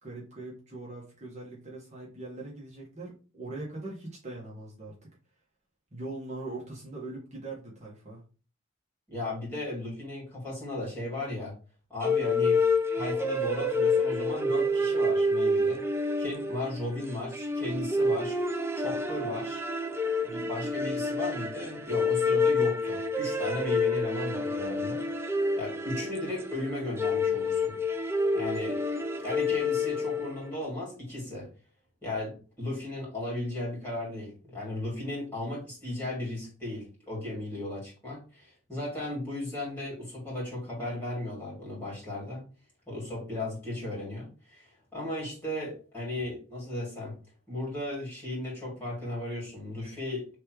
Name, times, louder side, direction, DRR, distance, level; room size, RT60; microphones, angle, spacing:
voice 1, 0.0-5.1 5.9-8.2, right 2 dB, 35° right, -5 dB, 1.3 m, -41 dB
voice 2, 9.1-11.6 11.9-12.6 13.0-15.8 16.2-18.4 18.7-19.6 20.2-25.0 25.6-27.7 28.3-28.8 29.2-31.5 32.0-42.4 42.9-47.2 47.5-50.3, left 1 dB, 10° left, -5 dB, 2.6 m, -35 dB
sound 1, 12.0-30.5, left 2 dB, 10° right, 0.5 m, -28 dB
3.5 x 3.2 x 4.7 m, 0.36 s
head